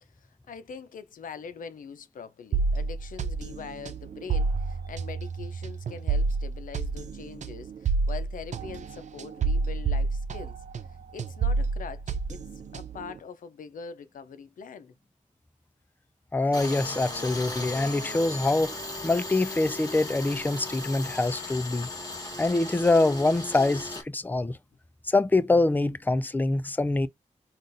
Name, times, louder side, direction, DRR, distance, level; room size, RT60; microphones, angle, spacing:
voice 1, 0.0-14.9, left 6 dB, 85° left, 0.5 m, -43 dB
sound 1, 2.5-10.9 11.2-13.1, right 4 dB, 65° right, 0.4 m, -29 dB
voice 2, 16.3-18.8 19.0-21.9 22.4-24.6 25.0-27.1, left 2 dB, 15° left, 0.4 m, -25 dB
Tools, 16.5-24.0, left 2 dB, 30° left, 1.2 m, -37 dB
3.8 x 2.4 x 2.5 m
cardioid pair, 60°, 14 cm